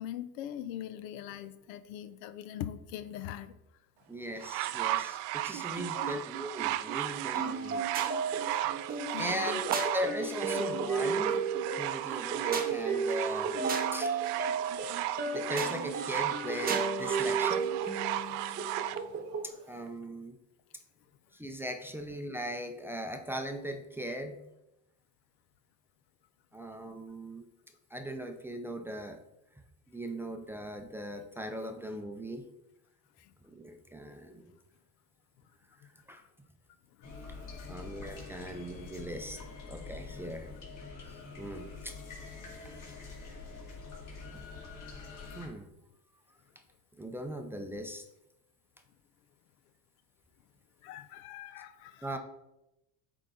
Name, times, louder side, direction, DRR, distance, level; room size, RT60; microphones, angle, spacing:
voice 1, 0.0-3.6 5.1-5.2 5.9-6.2 9.1-9.6 33.2-33.3 35.8-35.9 37.0-37.8 41.0-41.1 50.8-52.2, left 11 dB, 80° left, 12 dB, 0.7 m, -42 dB
voice 2, 4.1-7.9 8.2-8.3 9.2-11.4 11.8-13.6 13.9-14.1 15.3-17.7 19.4-20.4 21.3-24.4 26.5-27.5 27.9-29.2 29.9-32.5 33.4-34.5 36.1-36.2 37.7-39.4 39.7-40.5 41.1-41.9 44.3-44.5 45.3-45.7 47.0-48.0 52.0-52.2, equal, 5° right, 4 dB, 0.5 m, -39 dB
sound 1, 4.4-19.0 19.9-20.0, right 14 dB, 80° right, 0.5 m, -35 dB
sound 2, 7.4-19.5, right 4 dB, 20° right, 0.9 m, -34 dB
sound 3, 37.0-45.5, left 4 dB, 45° left, 2.2 m, -45 dB
9.0 x 3.9 x 3.7 m, 0.89 s
cardioid pair, 120°, 42 cm